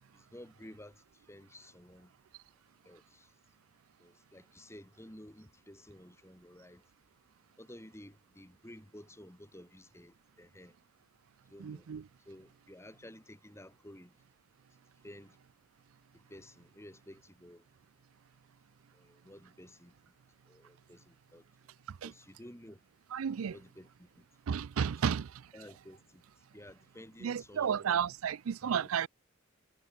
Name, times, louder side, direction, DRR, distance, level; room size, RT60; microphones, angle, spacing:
voice 1, 0.1-2.1 2.8-3.3 4.0-6.8 7.6-10.8 11.5-11.9 12.3-14.2 15.0-15.4 16.1-17.6 18.9-19.9 20.5-21.4 22.0-22.8 23.5-24.2 25.0-25.2 25.5-26.2 26.5-27.9 28.6-28.9, left 1 dB, 15° left, 3.9 m, -53 dB
voice 2, 11.6-12.0 22.0-22.1 23.1-23.5 24.5-25.3 27.2-29.1, right 7 dB, 80° right, 0.4 m, -32 dB
head